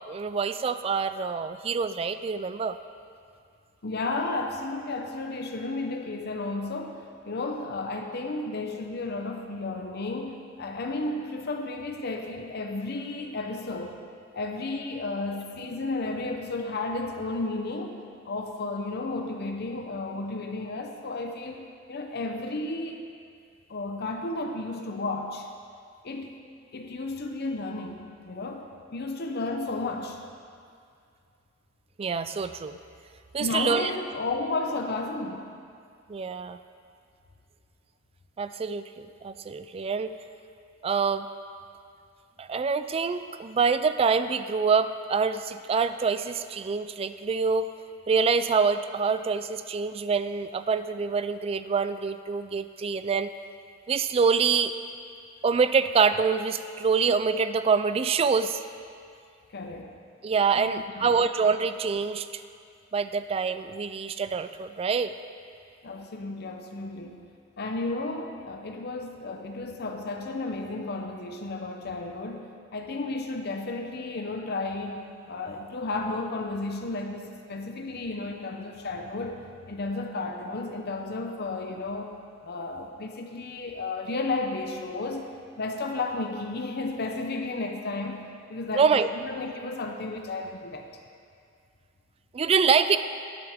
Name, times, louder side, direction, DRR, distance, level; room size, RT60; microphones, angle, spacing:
voice 1, 0.1-2.8 32.0-32.8 33.3-33.9 36.1-36.6 38.4-40.1 40.8-41.3 42.4-47.7 48.1-53.3 53.9-54.7 55.4-58.6 60.2-62.3 62.9-65.1 88.8-89.1 92.3-93.0, right 5 dB, 30° right, 11 dB, 0.3 m, -25 dB
voice 2, 3.8-14.0 14.3-18.0 18.2-23.0 23.7-25.5 26.0-26.4 26.7-28.0 28.2-30.2 33.4-35.5 59.5-59.9 60.5-60.7 61.0-61.2 65.8-67.2 67.6-75.0 75.3-79.4 79.7-82.1 82.4-90.9, left 2 dB, 50° left, 3 dB, 0.7 m, -33 dB
11.0 x 10.5 x 3.5 m, 2.3 s
head